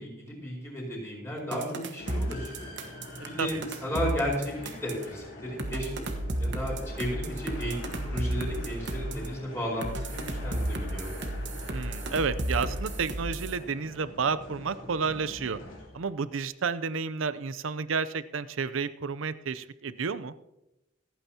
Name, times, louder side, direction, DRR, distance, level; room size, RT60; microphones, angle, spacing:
voice 1, 0.0-1.6 1.9-2.7 3.2-3.6 3.8-5.9 6.4-11.1, equal, 15° left, -3 dB, 4.8 m, -34 dB
sound 1, 1.5-5.0 5.6-9.3 9.8-13.6, right 1 dB, 65° right, 1.3 m, -33 dB
sound 2, 2.0-16.2, left 2 dB, 70° left, 3.8 m, -45 dB
voice 2, 3.2-3.6 11.7-15.6 15.9-20.3, right 5 dB, 90° right, 15 dB, 0.6 m, -31 dB
26.5 x 9.1 x 2.9 m, 0.92 s
head